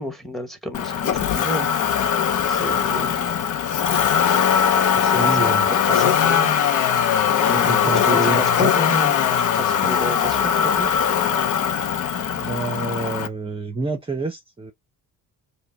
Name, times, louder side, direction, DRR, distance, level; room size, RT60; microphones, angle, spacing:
voice 1, 0.0-1.7 2.4-3.2 5.0-6.6 7.3-10.9, equal, ahead, 1.1 m, -31 dB
Motor vehicle (road), 0.7-13.3, left 8 dB, 55° left, 0.8 m, -20 dB
voice 2, 4.9-5.7 7.3-8.4 12.3-14.7, right 3 dB, 15° right, 0.7 m, -27 dB
5.0 x 2.2 x 3.4 m
cardioid pair, 115°, 36 cm